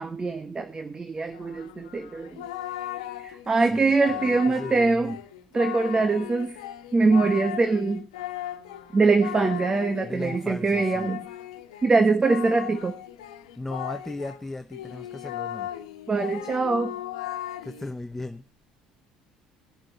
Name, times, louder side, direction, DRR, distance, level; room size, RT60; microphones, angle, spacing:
voice 1, 0.0-2.4 3.2-5.2 5.5-6.5 6.9-8.0 8.9-11.2 11.8-13.0 16.1-16.9, right 3 dB, 25° right, 1.3 m, -23 dB
Singing, 1.3-14.4 14.7-17.9, left 12 dB, 85° left, 1.2 m, -37 dB
voice 2, 3.6-5.2 10.0-11.1 13.5-15.7 17.6-18.4, left 2 dB, 10° left, 0.9 m, -37 dB
18.5 x 7.5 x 4.7 m
hypercardioid pair, 70°, 3 cm